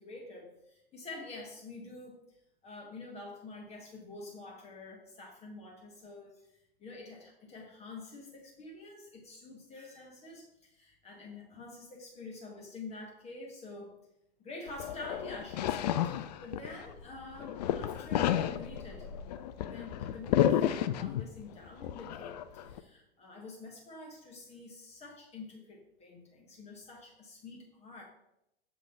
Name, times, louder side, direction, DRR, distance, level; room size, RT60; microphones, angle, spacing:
voice 1, 0.0-13.9 14.4-19.1 19.6-28.0, left 3 dB, 20° left, -1 dB, 1.1 m, -47 dB
sound 1, 14.7-17.0 17.3-21.4 21.8-22.8, left 11 dB, 45° left, 0.4 m, -31 dB
6.4 x 3.0 x 5.2 m, 0.84 s
figure-of-eight pair, 95°, 31 cm